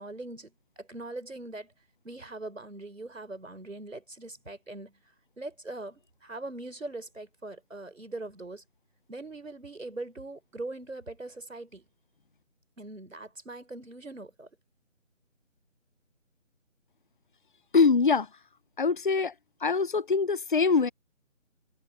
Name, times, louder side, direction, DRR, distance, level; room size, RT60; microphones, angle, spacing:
voice 1, 0.0-1.7 2.0-5.0 5.4-8.6 9.1-11.9 12.8-14.5, right 2 dB, 80° right, 4.2 m, -41 dB
voice 2, 17.7-18.3 18.8-19.3 19.6-20.9, left 4 dB, 40° left, 0.8 m, -23 dB
figure-of-eight pair, 155°, 38 cm